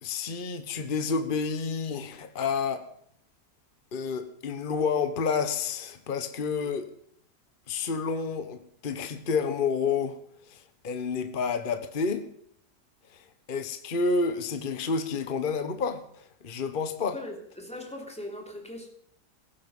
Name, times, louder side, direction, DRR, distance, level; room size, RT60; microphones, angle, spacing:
voice 1, 0.0-2.8 3.9-6.9 7.7-10.2 10.5-12.2 13.1-13.2 13.5-17.2, left 5 dB, 35° left, 1.2 m, -29 dB
voice 2, 17.1-18.9, left 1 dB, 5° left, 3.1 m, -40 dB
17.0 x 15.5 x 5.5 m
omnidirectional pair, 1.9 m